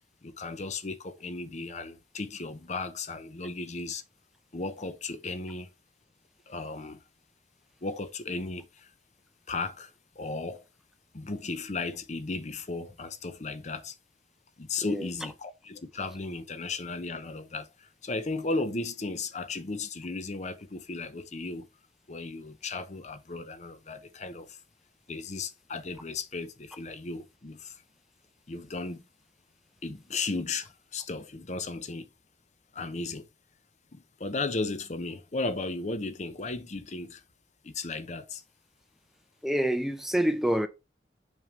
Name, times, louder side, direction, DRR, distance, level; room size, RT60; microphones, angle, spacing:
voice 1, 0.2-4.0 4.5-5.7 6.5-7.0 7.8-8.9 9.5-9.9 10.2-10.6 11.1-13.9 14.6-21.7 22.1-24.6 25.1-27.8 28.5-29.0 29.8-32.1 32.7-33.3 33.9-37.2 37.6-38.4, left 3 dB, 40° left, 0.7 m, -35 dB
voice 2, 39.4-40.7, right 1 dB, ahead, 0.5 m, -27 dB
6.3 x 5.2 x 3.2 m
head